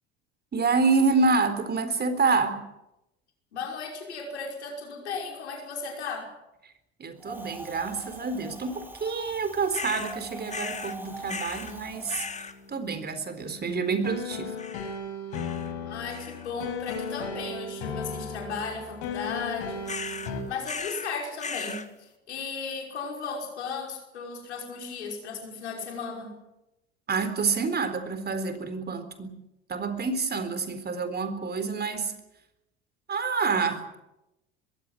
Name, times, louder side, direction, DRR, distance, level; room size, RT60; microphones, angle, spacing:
voice 1, 0.5-2.6 7.0-12.3 12.7-14.6 27.1-29.3 29.7-32.1 33.1-34.0, right 4 dB, 30° right, 10 dB, 4.0 m, -27 dB
voice 2, 3.5-6.3 15.9-19.9 20.5-26.4, left 5 dB, 90° left, 2 dB, 5.8 m, -35 dB
Wind, 7.2-12.3, right 1 dB, 5° right, 3.3 m, -43 dB
sound 1, 9.7-10.2 10.5-11.0 11.3-11.7 12.1-12.5 14.6-15.0 15.3-15.7 16.1-16.5 16.9-17.3 19.9-20.3 20.6-21.1 21.4-21.9, left 4 dB, 20° left, 2.0 m, -37 dB
sound 2, 11.0-20.4, left 4 dB, 65° left, 7.6 m, -37 dB
21.5 x 16.0 x 9.9 m, 0.91 s
hypercardioid pair, 75°, 32 cm